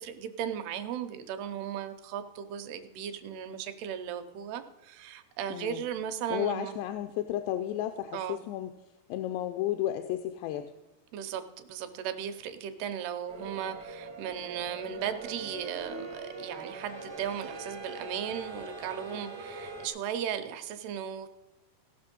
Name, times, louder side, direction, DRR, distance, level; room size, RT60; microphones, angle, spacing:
voice 1, 0.0-6.8 8.1-8.4 11.1-21.3, right 9 dB, 80° right, 8 dB, 2.7 m, -36 dB
voice 2, 5.5-5.8 6.3-8.7 9.1-10.7, left 12 dB, 90° left, 7 dB, 2.8 m, -33 dB
sound 1, 13.3-19.9, right 3 dB, 60° right, 1.0 m, -42 dB
17.5 x 6.1 x 5.2 m, 0.98 s
omnidirectional pair, 4.8 m